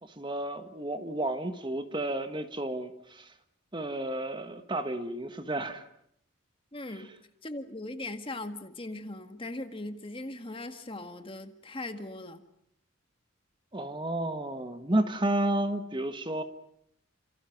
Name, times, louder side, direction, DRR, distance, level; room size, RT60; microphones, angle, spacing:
voice 1, 0.0-3.3 3.7-5.8 13.7-16.4, right 1 dB, 25° right, 8 dB, 1.5 m, -31 dB
voice 2, 6.7-7.1 7.4-12.4, left 2 dB, 25° left, 8 dB, 1.8 m, -39 dB
30.0 x 27.0 x 6.0 m, 0.72 s
head